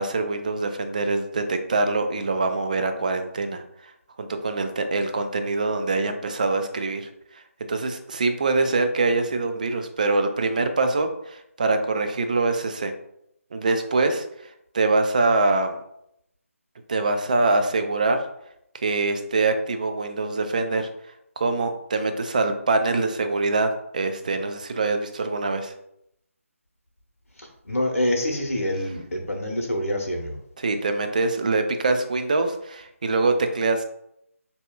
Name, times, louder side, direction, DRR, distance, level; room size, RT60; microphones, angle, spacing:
voice 1, 0.0-3.6 4.2-7.1 7.7-12.9 13.5-14.3 14.7-15.8 16.9-18.2 18.8-20.9 21.4-25.7 30.6-33.8, right 3 dB, 30° right, 7 dB, 0.3 m, -24 dB
voice 2, 27.4-30.4, left 1 dB, 70° left, 1 dB, 0.8 m, -26 dB
4.2 x 2.8 x 2.2 m, 0.76 s
figure-of-eight pair, 150°, 8 cm